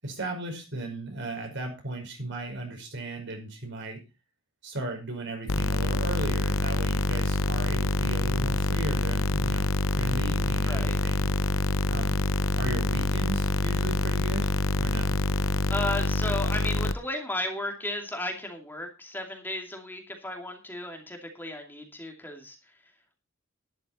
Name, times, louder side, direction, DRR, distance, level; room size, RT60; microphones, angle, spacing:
voice 1, 0.0-4.0 4.6-9.7 10.0-11.3 11.9-12.2 12.5-14.5 14.8-15.2, right 2 dB, 60° right, 3 dB, 5.5 m, -36 dB
sound 1, 5.5-16.9, left 2 dB, 80° left, 0.9 m, -26 dB
voice 2, 10.7-11.0 15.7-22.6, left 1 dB, 10° left, 3 dB, 2.4 m, -34 dB
12.0 x 11.5 x 4.3 m, 0.29 s
head